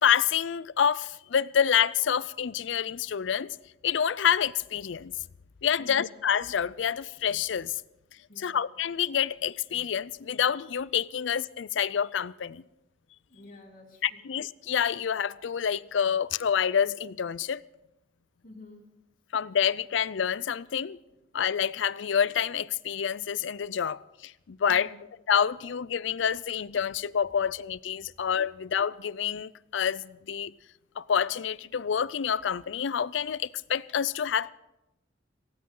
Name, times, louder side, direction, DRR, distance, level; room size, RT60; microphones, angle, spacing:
voice 1, 0.0-3.5 3.8-5.1 5.6-7.7 8.4-12.6 14.0-17.6 19.3-21.0 21.3-24.9 25.3-30.5 31.0-34.5, left 8 dB, 80° left, 0.5 m, -27 dB
voice 2, 5.8-6.1 8.3-8.6 13.3-14.2 18.4-18.8 24.7-25.0, left 2 dB, 45° left, 3.3 m, -49 dB
18.0 x 17.5 x 3.8 m
head